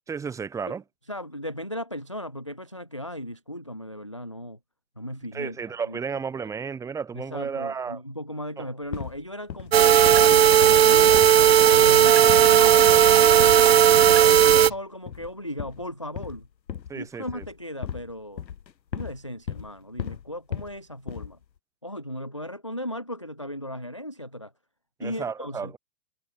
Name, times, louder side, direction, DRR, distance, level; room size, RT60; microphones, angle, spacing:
voice 1, 0.1-0.8 5.3-8.0 8.6-8.7 16.9-17.4 25.0-25.8, right 6 dB, 5° right, 2.2 m, -33 dB
voice 2, 1.1-4.6 5.0-5.6 5.9-6.0 7.1-11.2 11.7-13.6 14.0-16.5 16.9-18.4 18.9-21.4 21.8-24.5 25.0-25.7, equal, 20° left, 0.4 m, -36 dB
sound 1, 8.9-9.2 9.5-9.8 10.0-10.4 10.6-11.4 11.7-12.0 12.3-12.6 12.9-13.1 13.4-13.7 13.9-14.2 14.5-14.8 15.1-15.3 15.6-17.0 17.3-18.1 18.4-19.2 19.5-19.7 20.0-20.8 21.1-21.4, left 8 dB, 90° left, 3.3 m, -36 dB
sound 2, 9.7-14.7, right 9 dB, 40° right, 0.6 m, -15 dB
sound 3, 10.3-12.1 12.4-14.8, left 9 dB, 70° left, 5.6 m, -50 dB
hypercardioid pair, 170°, 50 cm